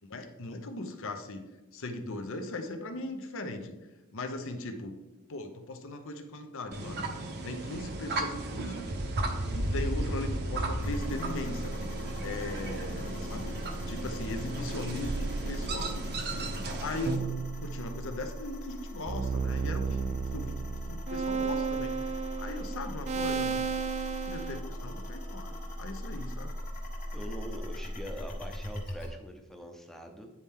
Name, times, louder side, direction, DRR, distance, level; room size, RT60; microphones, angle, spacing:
voice 1, 0.1-3.8 4.1-4.9 5.3-7.1 7.4-8.8 9.5-11.7 12.2-13.6 13.9-16.0 16.8-22.0 22.4-23.7 24.3-26.6, left 2 dB, 60° left, 7 dB, 0.8 m, -39 dB
sound 1, 6.7-17.2, right 2 dB, 45° right, 0.8 m, -35 dB
sound 2, 10.8-29.1, equal, 40° left, 1.4 m, -39 dB
sound 3, 15.1-16.4 17.1-18.4 19.1-24.6, right 5 dB, 30° right, 0.3 m, -34 dB
voice 2, 27.1-30.3, equal, ahead, 3 dB, 0.7 m, -43 dB
9.6 x 4.3 x 3.7 m, 1.0 s
head